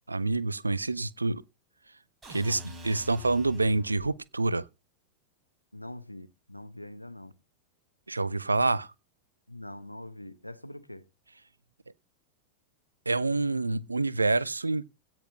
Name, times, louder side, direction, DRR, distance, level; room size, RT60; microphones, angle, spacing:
voice 1, 0.1-1.4 2.3-4.7 8.1-8.9 13.1-14.9, right 3 dB, 80° right, 0.6 m, -27 dB
sound 1, 2.2-4.2, left 1 dB, 15° right, 5.9 m, -45 dB
voice 2, 5.7-7.3 8.6-8.7 9.5-11.1, left 1 dB, 85° left, 0.9 m, -44 dB
16.5 x 6.0 x 5.5 m
figure-of-eight pair, 90°, 0 cm